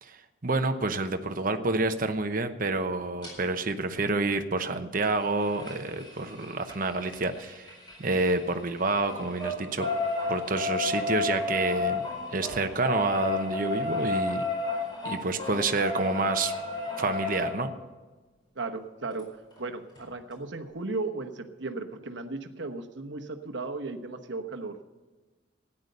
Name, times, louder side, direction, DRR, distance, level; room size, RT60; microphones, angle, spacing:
voice 1, 0.0-7.7 8.0-9.9 10.3-12.0 12.3-14.4 15.0-16.5 17.0-17.7, right 3 dB, 45° right, 7 dB, 0.9 m, -28 dB
sound 1, 3.2-3.3 5.0-8.5 8.8-17.5 19.2-19.3 19.6-19.7 20.0-20.1, left 3 dB, 25° left, 4.6 m, -32 dB
voice 2, 18.5-19.3 19.6-24.8, right 3 dB, 65° right, 6 dB, 1.1 m, -35 dB
13.5 x 9.9 x 6.7 m, 1.3 s
head